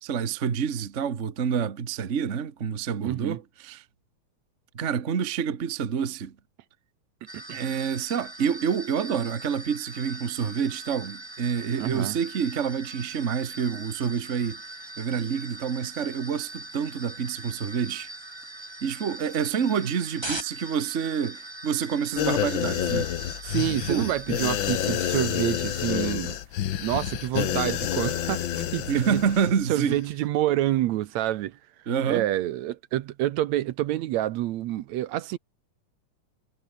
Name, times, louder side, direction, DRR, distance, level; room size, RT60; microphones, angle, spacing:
voice 1, 0.0-3.8 4.7-6.3 7.5-14.6 15.0-18.1 18.8-23.1 23.9-24.1 28.9-30.0 31.9-32.3, right 7 dB, 50° right, 0.8 m, -28 dB
voice 2, 3.0-3.4 7.3-7.6 11.8-12.2 23.4-26.4 26.8-29.2 29.7-31.6 32.1-35.4, right 14 dB, 75° right, 1.9 m, -28 dB
sound 1, 7.3-26.2, right 2 dB, 10° right, 1.7 m, -41 dB
sound 2, 22.2-29.5 29.8-30.0, left 11 dB, 75° left, 1.1 m, -28 dB
omnidirectional pair, 3.5 m